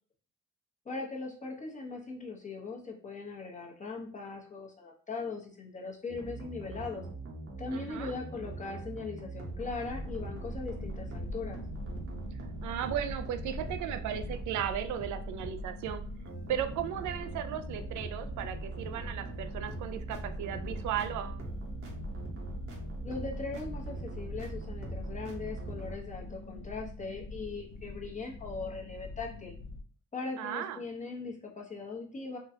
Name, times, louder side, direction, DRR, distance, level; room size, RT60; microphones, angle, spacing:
voice 1, 0.8-7.1 7.6-11.6 23.0-29.5 30.1-32.4, left 4 dB, 25° left, -1 dB, 0.9 m, -40 dB
sound 1, 6.1-25.9, right 2 dB, 45° right, 0.9 m, -41 dB
voice 2, 7.7-8.1 12.6-16.0 16.5-21.4 30.4-30.8, right 10 dB, 75° right, 9 dB, 0.5 m, -36 dB
sound 2, 9.9-29.8, left 2 dB, 45° left, 0.6 m, -44 dB
3.7 x 2.3 x 2.7 m, 0.43 s
cardioid pair, 90°, 30 cm